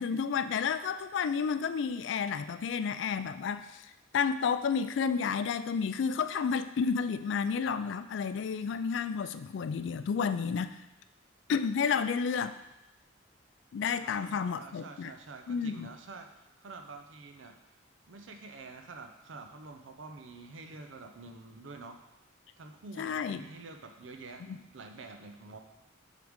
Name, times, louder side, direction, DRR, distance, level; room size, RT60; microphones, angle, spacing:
voice 1, 0.0-3.9 4.1-10.8 11.5-12.6 13.7-15.1 15.5-15.9 23.0-23.4 24.5-24.6, left 6 dB, 65° left, 12 dB, 0.3 m, -31 dB
voice 2, 14.0-16.3 16.6-17.8 18.1-22.0 22.6-25.6, right 3 dB, 75° right, 5 dB, 0.6 m, -47 dB
7.8 x 3.8 x 3.6 m, 0.94 s
head